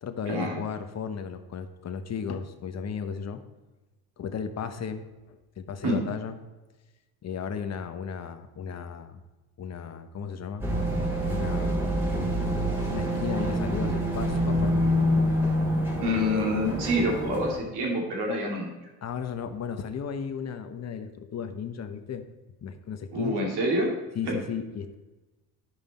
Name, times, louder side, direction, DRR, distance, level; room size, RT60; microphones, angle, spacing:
voice 1, 0.0-3.4 4.2-6.4 7.2-9.2 9.6-10.6 11.2-11.9 12.9-14.8 19.0-22.2 22.6-23.4 24.1-24.9, left 6 dB, 35° left, 9 dB, 1.0 m, -35 dB
sound 1, 10.6-17.6, equal, 5° right, 3.2 m, -26 dB
voice 2, 16.0-18.7 23.1-23.9 24.3-24.4, equal, 60° right, 0 dB, 2.8 m, -27 dB
12.0 x 5.2 x 4.3 m, 1.1 s
supercardioid pair, 75°, 44 cm